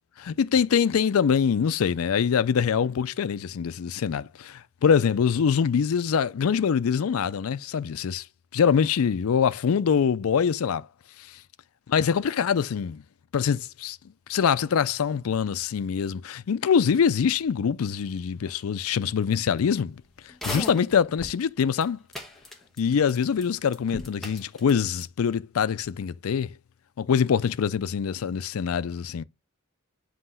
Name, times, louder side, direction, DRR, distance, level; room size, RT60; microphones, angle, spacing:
voice 1, 0.2-8.2 8.5-10.9 11.9-13.0 13.3-14.0 14.3-20.0 20.4-22.0 22.8-26.5 27.0-29.2, left 7 dB, 85° left, 0.4 m, -24 dB
sound 1, 20.3-21.4 21.8-21.9 22.1-23.1 23.4-23.5 23.7-24.7 25.0-25.1, left 1 dB, ahead, 1.0 m, -36 dB
7.7 x 2.9 x 5.5 m
head